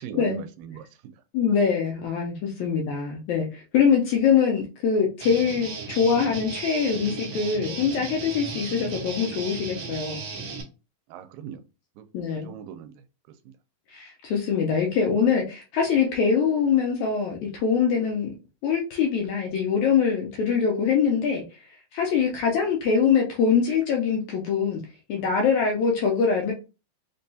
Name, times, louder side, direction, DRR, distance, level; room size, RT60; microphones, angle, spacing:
voice 1, 0.0-1.2 11.1-11.6 12.0-13.0 13.5-13.6 22.4-22.5, right 9 dB, 85° right, 9 dB, 2.3 m, -40 dB
voice 2, 1.3-10.2 12.1-12.5 13.9-18.3 18.6-21.4 21.9-24.8 25.1-26.5, left 6 dB, 80° left, 0 dB, 1.8 m, -23 dB
Guitar, 5.2-10.6, right 4 dB, 65° right, 1.4 m, -35 dB
5.3 x 2.3 x 2.7 m, 0.31 s
omnidirectional pair, 3.9 m